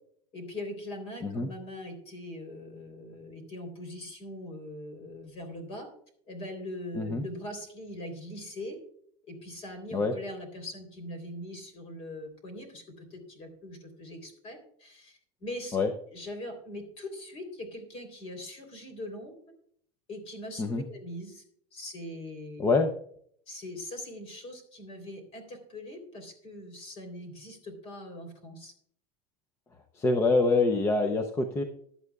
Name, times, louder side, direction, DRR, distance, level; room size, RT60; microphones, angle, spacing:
voice 1, 0.3-5.9 6.3-8.8 9.2-15.8 16.1-19.3 20.1-21.4 21.7-22.7 23.5-28.7, left 1 dB, 30° left, 6 dB, 3.4 m, -41 dB
voice 2, 22.6-22.9 30.0-31.6, left 3 dB, 15° left, 6 dB, 0.5 m, -25 dB
16.0 x 11.0 x 2.3 m, 0.64 s
supercardioid pair, 175°, 20 cm